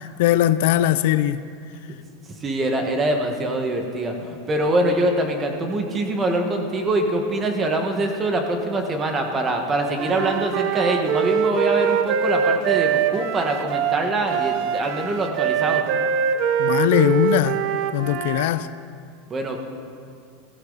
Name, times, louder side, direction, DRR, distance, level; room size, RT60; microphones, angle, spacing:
voice 1, 0.0-1.4 16.6-17.6 17.9-18.7, left 13 dB, 70° left, 0.5 m, -20 dB
voice 2, 2.4-15.8 19.3-19.6, right 1 dB, 20° right, 1.5 m, -24 dB
Wind instrument woodwind instrument, 10.0-18.5, right 8 dB, 50° right, 0.7 m, -23 dB
17.0 x 14.5 x 4.0 m
supercardioid pair, 150°, 0 cm